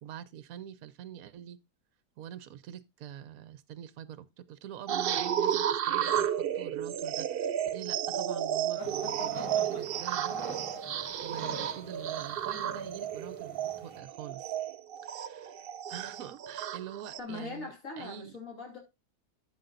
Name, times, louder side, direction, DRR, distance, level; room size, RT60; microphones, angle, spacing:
voice 1, 0.0-1.6 2.2-14.5 15.0-15.5 15.9-18.3, right 10 dB, 70° right, 1.0 m, -45 dB
sound 1, 4.9-17.2, right 9 dB, 90° right, 0.5 m, -32 dB
sound 2, 8.7-12.4, left 2 dB, 70° left, 4.4 m, -46 dB
sound 3, 8.8-14.0, right 3 dB, 20° right, 1.2 m, -47 dB
voice 2, 17.2-18.8, left 3 dB, 55° left, 2.9 m, -41 dB
12.0 x 7.0 x 2.5 m
omnidirectional pair, 1.7 m